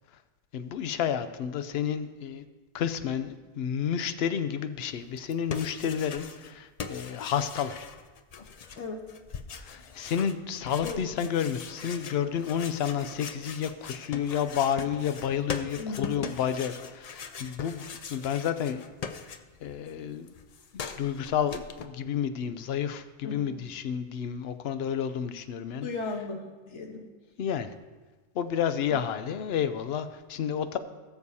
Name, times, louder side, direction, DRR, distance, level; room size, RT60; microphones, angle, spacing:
voice 1, 0.5-2.4 2.7-7.9 9.6-18.8 19.2-19.3 19.6-20.3 20.7-25.9 27.4-27.7 28.3-30.8, left 8 dB, 70° left, 11 dB, 0.8 m, -30 dB
sound 1, 5.2-6.5 6.8-19.8 20.0-21.9, left 6 dB, 50° left, 0.5 m, -41 dB
voice 2, 8.7-9.1 10.8-11.0 15.8-16.3 23.2-23.6 25.8-27.1 28.9-29.0, left 3 dB, 85° left, 2 dB, 1.5 m, -36 dB
18.5 x 6.9 x 2.8 m, 1.3 s
omnidirectional pair, 1.2 m